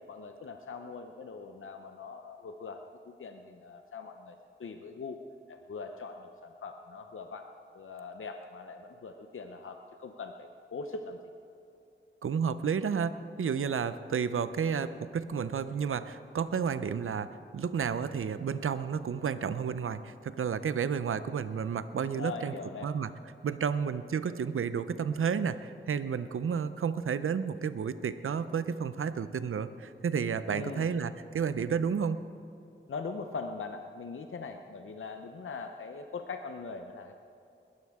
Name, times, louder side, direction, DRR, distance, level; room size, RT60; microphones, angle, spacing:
voice 1, 0.1-5.2 5.5-7.5 7.7-11.2 22.1-22.9 30.5-30.9 32.9-37.1, left 4 dB, 75° left, 5 dB, 0.7 m, -41 dB
voice 2, 12.2-22.5 22.8-23.1 23.4-32.2, right 6 dB, 85° right, 13 dB, 0.6 m, -31 dB
21.0 x 13.0 x 3.6 m, 2.6 s
cardioid pair, 45°, 21 cm